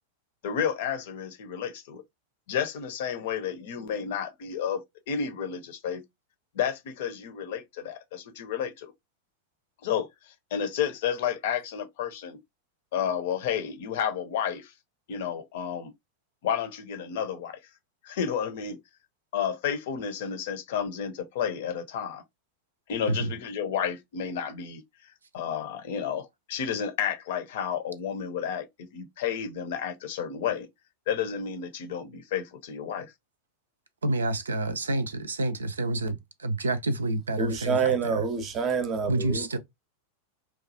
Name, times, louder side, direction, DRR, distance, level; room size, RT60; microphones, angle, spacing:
voice 1, 0.4-2.0 2.5-4.8 5.1-6.0 6.5-8.9 9.8-12.4 12.9-14.7 15.1-15.9 16.4-17.6 18.0-18.8 19.3-22.2 22.9-24.8 25.3-30.7 31.1-33.1, left 8 dB, 55° left, 0.6 m, -31 dB
voice 2, 34.0-38.1 39.1-39.6, right 2 dB, 75° right, 0.4 m, -28 dB
voice 3, 37.4-39.6, right 5 dB, 30° right, 0.6 m, -27 dB
3.0 x 2.3 x 2.6 m
figure-of-eight pair, 90°, 0 cm